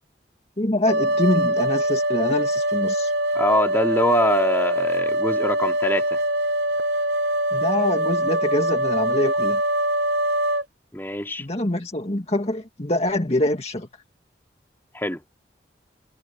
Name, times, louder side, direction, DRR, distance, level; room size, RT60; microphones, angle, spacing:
voice 1, 0.6-3.1 7.5-9.6 11.4-13.9, left 1 dB, 35° left, 2.0 m, -25 dB
sound 1, 0.9-10.6, right 1 dB, 70° right, 0.9 m, -23 dB
voice 2, 3.3-6.2 10.9-11.5 14.9-15.2, left 1 dB, 10° left, 3.1 m, -23 dB
head